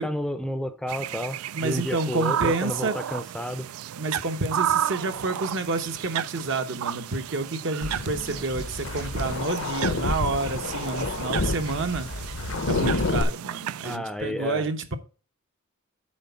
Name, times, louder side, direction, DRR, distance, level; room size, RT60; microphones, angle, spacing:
voice 1, 0.0-3.7 13.8-14.7, left 1 dB, 5° left, 0.5 m, -31 dB
sound 1, 0.9-14.0, right 10 dB, 85° right, 0.3 m, -33 dB
voice 2, 1.5-3.0 3.9-12.1 12.7-14.9, right 3 dB, 60° right, 1.0 m, -29 dB
sound 2, 7.8-13.2, left 3 dB, 65° left, 0.8 m, -29 dB
7.7 x 4.3 x 5.6 m
head